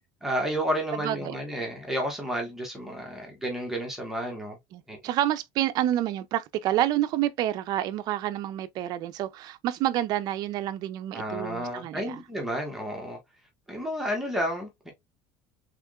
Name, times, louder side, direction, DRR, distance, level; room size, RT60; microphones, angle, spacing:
voice 1, 0.2-4.6 4.9-5.0 11.1-13.2 13.7-14.9, equal, 5° right, 1.1 m, -31 dB
voice 2, 1.0-1.4 4.7-12.2, right 13 dB, 50° right, 0.5 m, -28 dB
3.6 x 3.5 x 2.3 m
cardioid pair, 150°, 9 cm